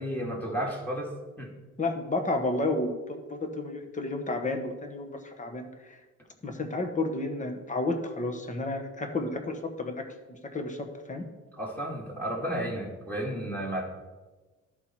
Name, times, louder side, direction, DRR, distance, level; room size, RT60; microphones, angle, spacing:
voice 1, 0.0-1.5 11.5-13.8, equal, 5° left, -3 dB, 2.4 m, -33 dB
voice 2, 1.8-6.0 6.4-10.0 10.4-11.3, left 2 dB, 25° left, 5 dB, 1.3 m, -31 dB
13.0 x 4.4 x 4.5 m, 1.2 s
cardioid pair, 90°, 30 cm